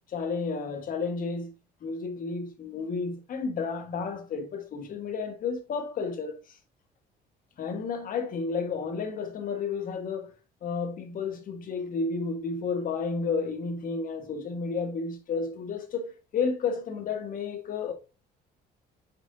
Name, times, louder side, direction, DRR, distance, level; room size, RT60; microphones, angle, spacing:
voice 1, 0.1-1.5 1.8-6.6 7.6-10.3 10.6-17.9, left 4 dB, 55° left, 1.4 m, -32 dB
6.2 x 5.9 x 2.6 m
cardioid pair, 110°, 17 cm